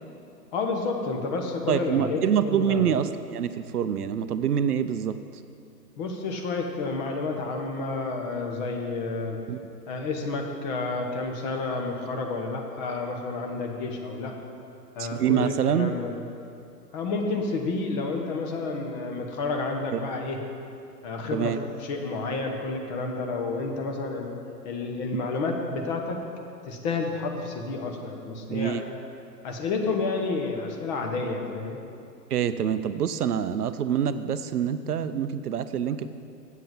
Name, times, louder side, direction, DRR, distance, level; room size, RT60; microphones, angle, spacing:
voice 1, 0.5-2.9 6.0-9.4 9.9-14.3 14.9-16.1 16.9-20.4 21.0-24.3 24.6-26.2 26.7-28.8 29.4-31.8, left 3 dB, 25° left, 2 dB, 1.1 m, -30 dB
voice 2, 1.7-5.2 9.5-9.6 15.0-15.9 19.9-20.0 21.3-21.6 28.5-28.8 32.3-36.1, right 8 dB, 65° right, 12 dB, 0.6 m, -26 dB
8.2 x 7.5 x 7.5 m, 2.5 s
figure-of-eight pair, 120°, 50 cm